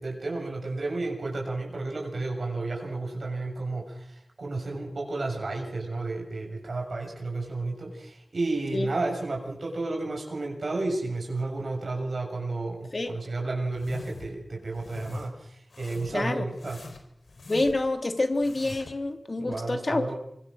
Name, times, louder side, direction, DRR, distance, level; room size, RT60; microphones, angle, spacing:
voice 1, 0.0-16.8 19.4-20.2, right 2 dB, 65° right, 0 dB, 7.0 m, -32 dB
sound 1, 13.7-14.3 14.7-15.3 15.7-16.2 16.6-17.9 18.3-19.0, left 3 dB, 80° left, 4.7 m, -43 dB
voice 2, 16.1-16.4 17.5-20.1, left 2 dB, 45° left, 6 dB, 3.2 m, -27 dB
26.5 x 23.0 x 6.3 m, 0.73 s
wide cardioid pair, 80°, 0 cm